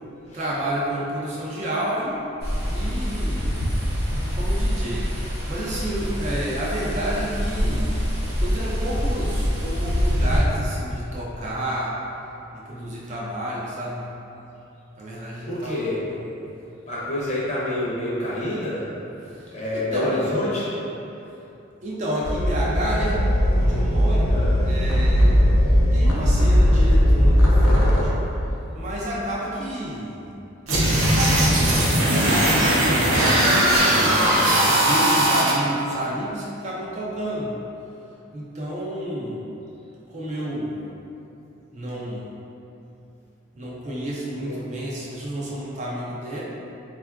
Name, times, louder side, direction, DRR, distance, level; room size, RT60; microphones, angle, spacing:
voice 1, 0.3-2.3 2.7-3.6 4.2-8.0 8.4-12.0 12.5-14.1 15.0-16.2 19.3-20.2 21.8-23.2 23.5-25.5 25.9-28.1 28.7-30.2 30.7-34.2 34.6-37.6 38.3-39.4 40.1-40.8 41.7-42.3 43.6-46.4, right 1 dB, 35° right, -5 dB, 0.3 m, -30 dB
sound 1, 2.4-10.4, equal, 50° right, 1.0 m, -25 dB
voice 2, 15.4-16.0 16.9-18.9 19.5-20.7 24.3-24.5 34.0-34.5 44.4-44.5, left 1 dB, 35° left, -8 dB, 0.6 m, -27 dB
sound 2, 22.2-28.1, equal, 90° left, 0.5 m, -18 dB
sound 3, 30.7-35.5, right 1 dB, 80° right, 0.6 m, -19 dB
3.6 x 2.3 x 2.3 m, 2.8 s
head